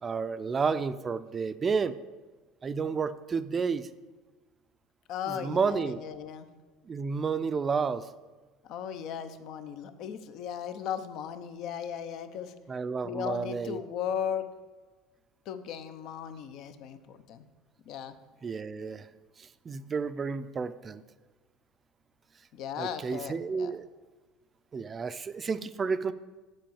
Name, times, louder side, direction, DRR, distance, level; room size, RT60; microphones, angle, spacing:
voice 1, 0.0-1.9 2.6-3.9 5.3-6.0 6.9-8.1 12.7-13.8 18.4-19.1 19.4-21.0 22.8-23.9 24.7-26.1, right 5 dB, 30° right, 13 dB, 0.4 m, -31 dB
voice 2, 5.1-6.5 8.6-12.5 13.0-14.5 15.5-17.4 17.9-18.1 22.5-23.7, left 8 dB, 60° left, 10 dB, 0.7 m, -36 dB
7.6 x 4.7 x 7.1 m, 1.3 s
supercardioid pair, 90°, 0 cm